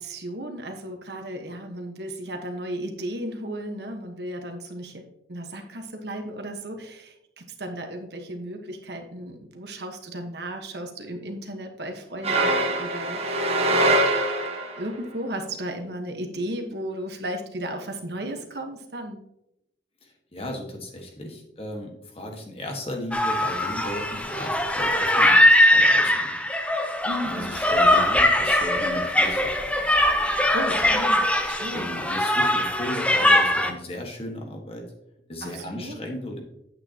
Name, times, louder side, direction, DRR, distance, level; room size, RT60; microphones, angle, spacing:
voice 1, 0.0-14.0 14.7-19.2 27.0-27.5 30.5-32.0 33.6-33.8 35.4-36.0, right 1 dB, 65° right, 4 dB, 1.3 m, -35 dB
sound 1, 12.2-14.9, right 2 dB, 35° right, 1.2 m, -23 dB
voice 2, 20.0-26.3 27.2-29.6 30.7-31.0 31.7-34.9 35.3-36.4, left 1 dB, 35° left, 2 dB, 1.5 m, -35 dB
sound 2, 23.1-33.7, left 1 dB, 5° left, 0.7 m, -21 dB
9.7 x 8.3 x 2.9 m, 0.81 s
head